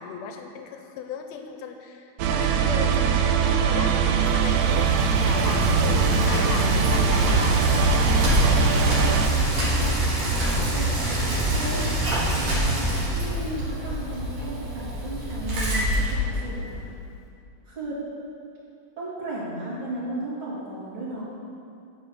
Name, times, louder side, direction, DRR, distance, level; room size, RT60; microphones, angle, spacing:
voice 1, 0.0-4.0 4.3-7.6 12.5-13.1, left 6 dB, 75° left, 5 dB, 1.8 m, -37 dB
sound 1, 2.2-9.3, right 6 dB, 80° right, 1.6 m, -22 dB
Bicycle, 3.7-16.8, right 1 dB, 60° right, 3.1 m, -25 dB
voice 2, 8.8-10.1 10.6-11.1 11.5-11.9 13.1-16.8 17.7-18.0 19.0-21.2, right 2 dB, 35° right, -9 dB, 3.5 m, -35 dB
9.8 x 5.5 x 7.5 m, 2.4 s
omnidirectional pair, 3.5 m